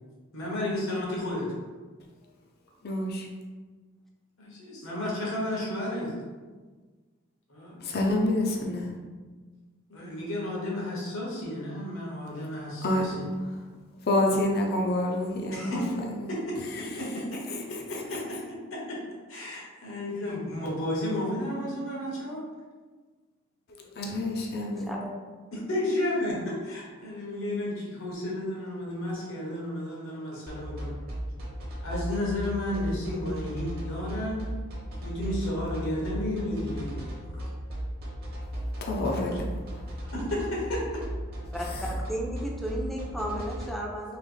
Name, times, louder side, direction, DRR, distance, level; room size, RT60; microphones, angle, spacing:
voice 1, 0.3-1.5 4.4-6.1 7.5-7.8 9.9-13.3 15.5-15.9 16.3-17.4 17.9-18.0 18.7-19.0 19.3-22.4 23.7-23.9 25.5-31.0 31.8-34.4 35.0-37.0 37.3-37.4 40.1-40.9, left 1 dB, 70° left, -4 dB, 1.3 m, -32 dB
voice 2, 2.8-3.3 7.8-9.0 12.8-13.6 14.0-15.8 16.1-16.3 16.7-18.2 24.0-24.9 38.8-39.8 41.6-42.0, left 1 dB, 50° left, 0 dB, 0.6 m, -29 dB
sound 1, 30.5-43.7, equal, 50° right, 0.9 m, -35 dB
voice 3, 41.5-44.2, equal, ahead, -2 dB, 0.5 m, -34 dB
3.3 x 3.0 x 3.9 m, 1.4 s
head